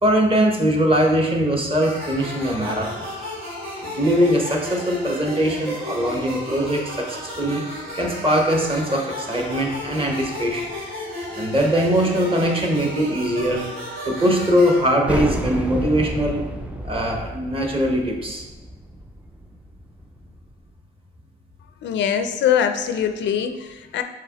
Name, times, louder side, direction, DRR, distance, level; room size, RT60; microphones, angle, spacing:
voice 1, 0.0-2.9 3.8-6.8 7.1-7.6 7.9-10.6 11.3-13.6 14.0-16.5 16.8-18.4, equal, 25° right, 1 dB, 0.9 m, -21 dB
sound 1, 1.8-14.8, left 1 dB, 85° right, 1.3 m, -33 dB
sound 2, 15.1-20.4, right 1 dB, 5° right, 0.3 m, -30 dB
voice 2, 21.8-24.0, left 8 dB, 65° left, 8 dB, 0.4 m, -22 dB
4.7 x 3.6 x 2.9 m, 1.2 s
cardioid pair, 90°, 20 cm